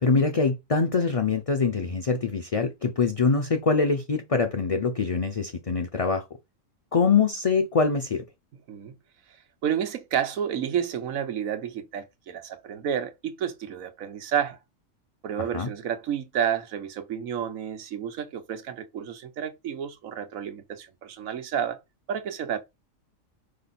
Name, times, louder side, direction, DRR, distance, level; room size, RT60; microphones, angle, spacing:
voice 1, 0.0-6.2 6.9-8.2 15.4-15.7, left 4 dB, 35° left, 0.6 m, -24 dB
voice 2, 9.6-14.6 15.2-21.8 22.1-22.6, right 8 dB, 85° right, 1.3 m, -30 dB
5.3 x 5.0 x 4.2 m
omnidirectional pair, 1.4 m